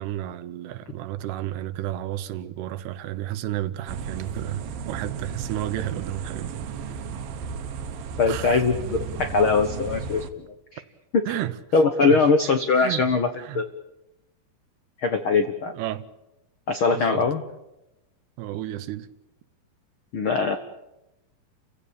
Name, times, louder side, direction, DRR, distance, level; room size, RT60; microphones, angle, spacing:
voice 1, 0.0-6.6 8.3-8.6 11.3-11.6 12.0-12.2 12.7-13.1 13.4-13.6 15.7-16.0 16.9-17.2 18.4-19.1, right 13 dB, 85° right, 3.2 m, -32 dB
sound 1, 3.9-10.3, right 6 dB, 70° right, 2.9 m, -34 dB
voice 2, 8.2-10.5 10.7-10.8 11.1-11.2 11.7-13.3 13.5-13.7 15.0-15.7 16.7-17.4 20.1-20.6, left 4 dB, 80° left, 1.1 m, -21 dB
30.0 x 16.5 x 8.8 m
omnidirectional pair, 4.6 m